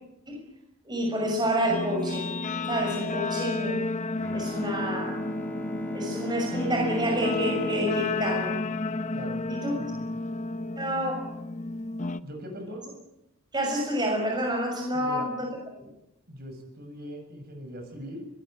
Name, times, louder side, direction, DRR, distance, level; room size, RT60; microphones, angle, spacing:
voice 1, 0.8-2.4 2.7-3.8 4.3-5.2 5.9-8.6 9.5-9.8 10.8-11.1 13.5-15.5 15.8-15.9, equal, 20° right, 1 dB, 6.2 m, -28 dB
Guitar, 1.6-12.2, left 3 dB, 35° left, 0.9 m, -32 dB
Bowed string instrument, 4.2-9.8, equal, 10° left, 3.0 m, -38 dB
voice 2, 12.2-12.8 14.9-15.3 16.3-18.3, equal, 45° right, 5 dB, 7.3 m, -40 dB
24.0 x 20.5 x 9.3 m, 0.88 s
head